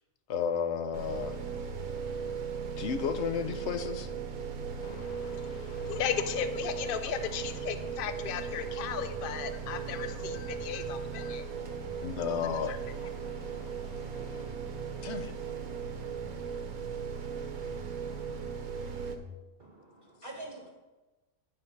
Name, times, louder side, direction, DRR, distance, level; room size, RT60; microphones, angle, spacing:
voice 1, 0.3-1.4 2.8-4.1 12.0-12.7 15.0-15.3, left 7 dB, 60° left, 9 dB, 0.8 m, -32 dB
sound 1, 0.9-19.2, right 6 dB, 75° right, 1.3 m, -37 dB
voice 2, 4.8-11.5 12.7-12.8 13.2-14.5, left 8 dB, 75° left, 9 dB, 0.5 m, -37 dB
voice 3, 19.6-20.7, right 2 dB, 40° right, -1 dB, 1.2 m, -45 dB
10.5 x 5.5 x 4.6 m, 1.1 s
omnidirectional pair, 1.5 m